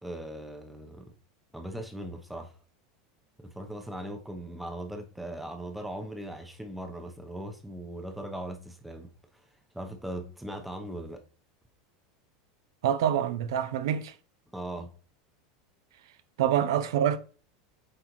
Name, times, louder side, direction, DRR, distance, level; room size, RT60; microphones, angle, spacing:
voice 1, 0.0-1.1 1.5-2.5 3.4-9.4 9.7-11.2 14.5-14.9, right 1 dB, 5° right, 0.8 m, -39 dB
voice 2, 12.8-14.1 16.4-17.2, right 10 dB, 90° right, 0.6 m, -26 dB
7.8 x 4.1 x 3.1 m
supercardioid pair, 155°, 2 cm